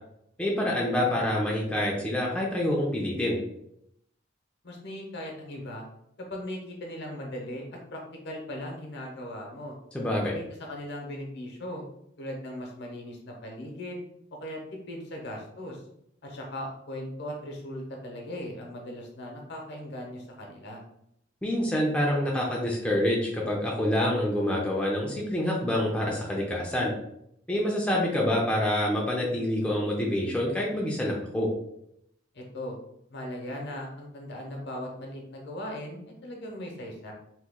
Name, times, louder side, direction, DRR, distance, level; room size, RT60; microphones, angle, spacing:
voice 1, 0.4-3.4 9.9-10.3 21.4-26.9 27.5-31.5, left 1 dB, 5° left, -3 dB, 0.4 m, -27 dB
voice 2, 4.6-5.8 6.3-9.8 10.3-11.8 12.2-14.0 14.4-14.6 14.9-15.8 16.2-20.8 32.3-32.8 33.1-37.1, left 1 dB, 60° left, 0 dB, 0.8 m, -38 dB
2.9 x 2.3 x 3.5 m, 0.76 s
head